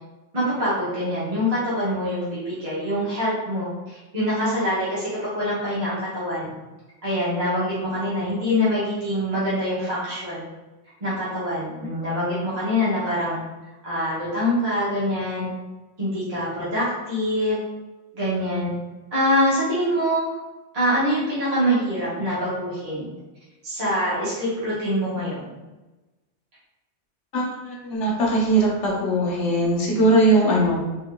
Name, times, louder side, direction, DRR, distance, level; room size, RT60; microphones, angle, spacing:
voice 1, 0.3-6.5 7.0-10.5 11.0-13.4 13.8-15.5 16.0-17.6 18.1-18.7 19.1-20.3 20.7-23.1 23.6-25.6, equal, 35° right, -10 dB, 1.1 m, -24 dB
voice 2, 27.3-30.8, right 1 dB, 70° left, -3 dB, 1.2 m, -20 dB
3.7 x 2.8 x 2.2 m, 1.1 s
omnidirectional pair, 1.2 m